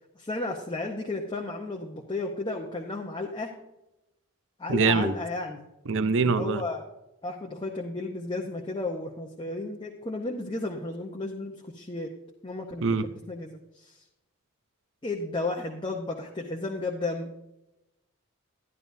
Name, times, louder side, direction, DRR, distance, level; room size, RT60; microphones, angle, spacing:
voice 1, 0.2-3.5 4.6-5.7 6.2-6.8 7.2-12.1 12.4-14.0 15.0-17.3, left 2 dB, 20° left, 0 dB, 0.9 m, -33 dB
voice 2, 4.7-5.1 5.9-6.6 12.8-13.0, right 4 dB, 60° right, 13 dB, 0.6 m, -24 dB
12.5 x 11.0 x 2.7 m, 0.90 s
head